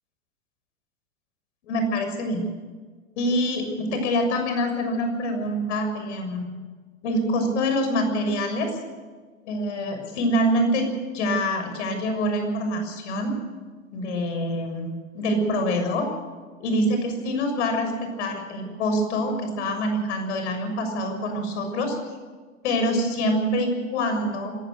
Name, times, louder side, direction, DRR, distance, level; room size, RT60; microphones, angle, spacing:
voice 1, 1.7-2.5 3.2-6.4 7.0-8.8 9.5-13.4 13.9-14.9 15.1-16.1 16.6-22.0 22.6-24.6, equal, 65° left, 6 dB, 6.8 m, -25 dB
26.0 x 16.0 x 6.6 m, 1.4 s
hypercardioid pair, 100°, 38 cm